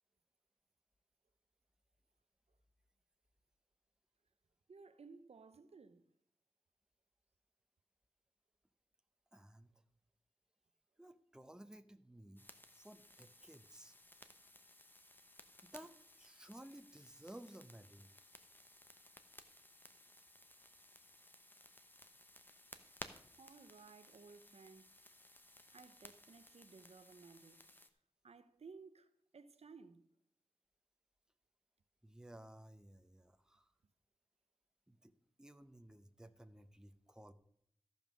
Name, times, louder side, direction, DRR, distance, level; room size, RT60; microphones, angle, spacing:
voice 1, 4.7-6.1 23.4-24.9 25.7-27.6 28.2-30.1, right 4 dB, 85° right, 0.7 m, -58 dB
voice 2, 9.3-9.7 11.0-12.4 12.7-13.9 15.6-18.1 32.0-33.7 34.9-35.1 35.4-37.3, right 1 dB, 5° right, 0.7 m, -56 dB
sound 1, 12.4-27.9, left 1 dB, 20° left, 0.9 m, -59 dB
14.0 x 5.4 x 6.2 m
wide cardioid pair, 85°, 10 cm